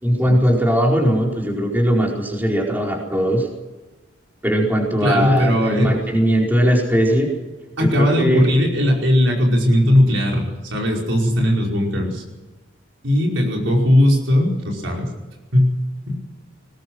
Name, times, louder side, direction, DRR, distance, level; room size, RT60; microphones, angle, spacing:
voice 1, 0.0-3.5 4.4-7.3 7.8-8.6, equal, 10° right, -1 dB, 4.6 m, -19 dB
voice 2, 5.0-5.9 7.8-12.2 13.0-15.1 15.5-15.7 16.1-16.2, left 1 dB, 70° right, 0 dB, 5.2 m, -18 dB
21.5 x 20.0 x 6.3 m, 1.2 s
head